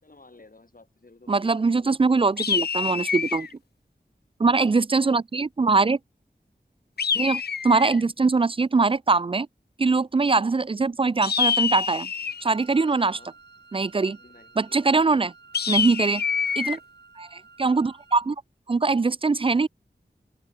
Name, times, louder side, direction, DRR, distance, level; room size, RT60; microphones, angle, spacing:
voice 1, 0.0-2.2 12.9-13.4 14.1-14.9, left 3 dB, 55° left, 5.7 m, -54 dB
voice 2, 1.3-3.5 4.4-6.0 7.2-9.5 9.8-12.1 12.4-13.2 13.7-14.2 14.6-15.3 15.7-16.2 16.6-16.8 17.2-18.4 18.7-19.7, right 4 dB, 35° right, 0.3 m, -22 dB
sound 1, 2.4-3.5 7.0-8.0 11.2-12.5 15.5-16.8, left 6 dB, 70° left, 0.5 m, -26 dB
Wind instrument woodwind instrument, 12.3-18.3, right 4 dB, 90° right, 6.0 m, -52 dB
wide cardioid pair, 55°, 17 cm